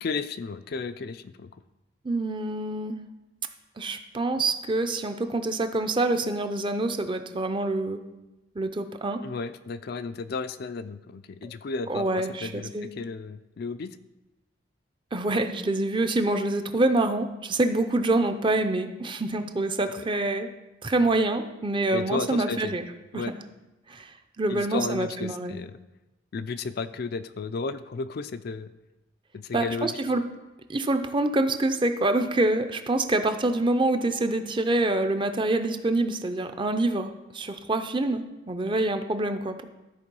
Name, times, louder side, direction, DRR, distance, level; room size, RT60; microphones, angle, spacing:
voice 1, 0.0-1.5 9.2-14.0 20.0-20.1 21.9-22.7 23.1-23.3 24.5-25.8 26.3-28.7 29.3-30.0, left 4 dB, 55° left, 11 dB, 0.4 m, -33 dB
voice 2, 2.0-3.0 3.8-8.0 8.6-9.2 11.4-11.5 11.9-12.9 15.1-20.5 20.8-22.8 23.1-23.2 23.9-24.1 24.4-25.6 29.5-30.2 30.7-39.6, right 2 dB, 25° right, 8 dB, 0.6 m, -26 dB
13.0 x 4.4 x 5.4 m, 1.0 s
head